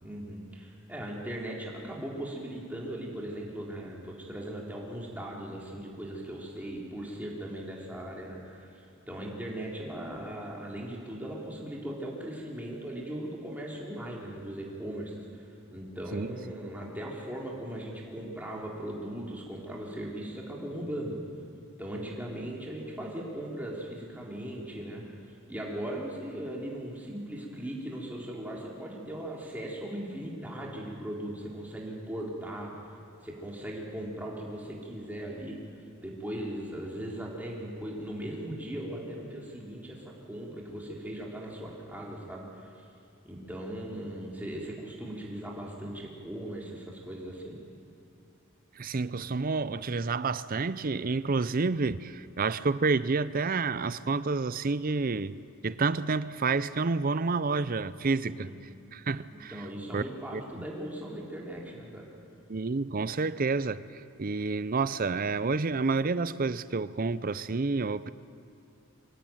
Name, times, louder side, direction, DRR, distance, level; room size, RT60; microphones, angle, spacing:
voice 1, 0.0-15.2 15.7-21.2 21.8-25.0 25.5-32.9 33.2-35.6 36.0-42.9 43.2-47.6 58.2-58.5 59.3-62.1, right 1 dB, 10° right, 3.5 m, -38 dB
voice 2, 48.8-55.4 55.6-58.5 58.9-59.6 59.9-60.0 60.3-60.6 62.5-68.1, right 4 dB, 40° right, 0.6 m, -29 dB
24.5 x 16.5 x 9.1 m
head